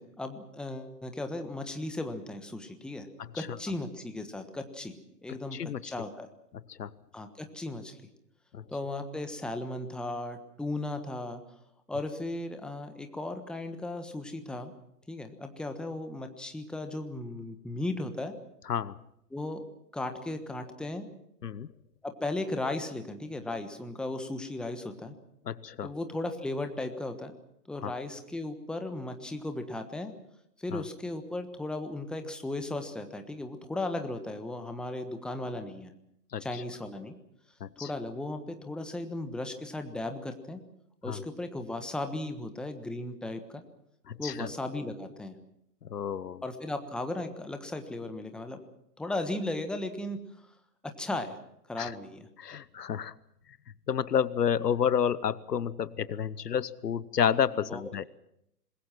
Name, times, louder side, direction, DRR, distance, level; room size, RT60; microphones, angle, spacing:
voice 1, 0.0-3.1 3.3-5.0 5.2-6.3 7.1-8.0 8.7-11.4 11.9-14.7 15.1-18.4 19.3-19.6 19.9-21.0 22.0-25.1 25.8-27.3 27.7-30.1 30.6-35.9 36.4-37.1 37.8-40.6 41.0-43.6 44.2-45.4 46.4-48.6 49.0-50.2 50.8-51.4 51.7-52.3 57.7-58.1, left 2 dB, ahead, 6 dB, 1.3 m, -36 dB
voice 2, 5.5-5.9 6.7-6.9 8.5-8.6 18.7-18.9 21.4-21.7 25.5-25.9 27.8-27.9 30.7-30.8 36.3-36.4 37.6-37.9 41.1-41.2 44.1-44.5 45.9-46.4 51.8-51.9 52.4-53.1 53.9-58.1, left 8 dB, 75° left, 18 dB, 1.1 m, -30 dB
26.5 x 21.5 x 6.0 m, 0.76 s
figure-of-eight pair, 130°, 48 cm